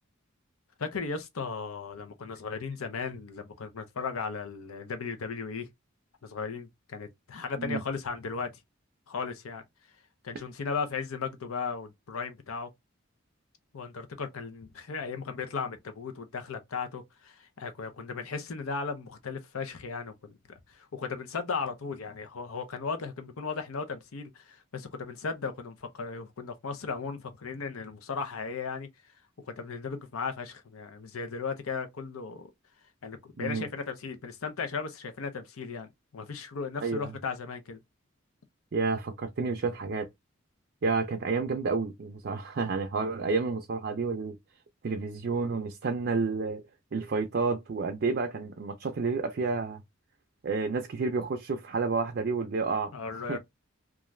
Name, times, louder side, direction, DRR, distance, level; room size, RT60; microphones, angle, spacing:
voice 1, 0.8-5.7 6.2-8.6 9.1-9.6 10.2-12.7 13.7-20.4 20.7-28.9 29.5-32.5 33.0-37.8 52.9-53.4, left 5 dB, 85° left, 0.6 m, -36 dB
voice 2, 36.8-37.1 38.7-40.1 40.8-44.4 44.8-46.6 46.9-49.8 50.4-52.9 53.3-53.4, right 4 dB, 50° right, 0.4 m, -30 dB
2.4 x 2.3 x 3.1 m
head